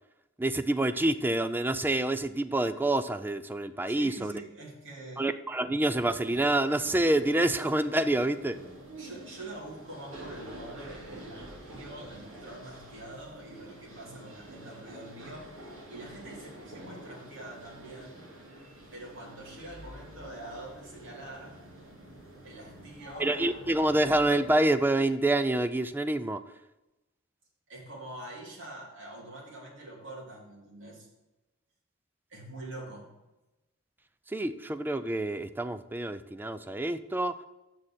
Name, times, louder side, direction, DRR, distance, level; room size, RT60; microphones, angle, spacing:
voice 1, 0.4-4.3 5.2-8.6 23.2-26.4 34.3-37.4, right 1 dB, 10° right, 11 dB, 0.3 m, -27 dB
voice 2, 3.9-5.2 9.0-15.5 15.9-18.3 18.9-21.6 22.4-23.3 27.7-31.1 32.3-33.1, right 1 dB, 65° right, -4 dB, 3.2 m, -45 dB
sound 1, 5.9-24.6, right 1 dB, 80° right, 2.9 m, -48 dB
6.5 x 6.4 x 7.3 m, 0.99 s
head